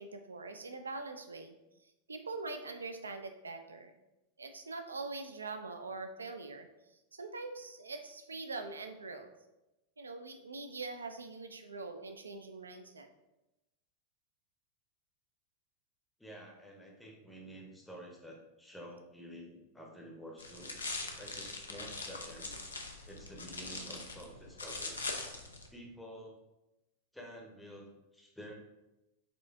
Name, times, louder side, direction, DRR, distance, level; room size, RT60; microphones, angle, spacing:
voice 1, 0.0-1.5 2.1-3.9 4.4-6.7 7.1-9.3 10.0-13.1, right 3 dB, 75° right, 7 dB, 0.4 m, -43 dB
voice 2, 16.2-20.8 21.2-22.6 23.0-25.0 25.7-26.4 27.1-28.5, equal, 5° left, -1 dB, 0.7 m, -50 dB
sound 1, 20.4-25.7, left 3 dB, 75° left, 0.4 m, -42 dB
4.3 x 2.5 x 3.4 m, 0.96 s
figure-of-eight pair, 90°, 0 cm